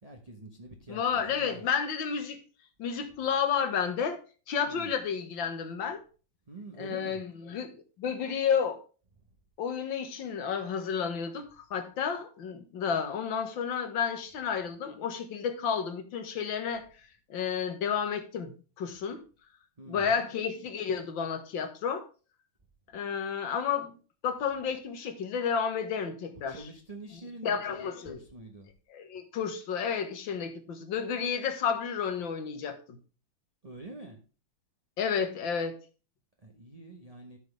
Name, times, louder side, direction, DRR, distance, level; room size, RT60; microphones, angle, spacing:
voice 1, 0.0-1.6 4.7-4.9 6.5-7.2 19.8-20.3 26.3-28.7 33.6-34.2 36.4-37.4, right 2 dB, 25° right, 1.1 m, -46 dB
voice 2, 0.9-2.4 2.8-4.2 4.5-6.0 6.8-8.8 9.6-16.8 17.3-18.5 18.8-19.2 19.9-22.0 22.9-24.0 24.2-26.6 27.4-28.2 28.9-33.0 35.0-35.8, left 7 dB, 70° left, 2.1 m, -31 dB
13.0 x 6.2 x 3.4 m
omnidirectional pair, 2.2 m